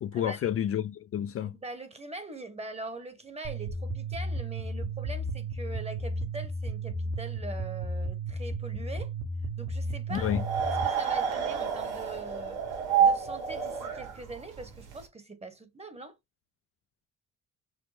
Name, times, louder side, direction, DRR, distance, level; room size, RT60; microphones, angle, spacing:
voice 1, 0.0-1.6 10.1-10.4, left 10 dB, 50° left, 0.4 m, -30 dB
voice 2, 1.4-9.1 9.6-10.3 10.7-12.6 13.0-16.2, right 3 dB, 20° right, 1.2 m, -42 dB
sound 1, 3.4-10.8, right 1 dB, 55° right, 1.4 m, -34 dB
sound 2, 10.1-15.0, right 7 dB, 80° right, 1.6 m, -29 dB
6.2 x 2.2 x 3.2 m
cardioid pair, 90°, 30 cm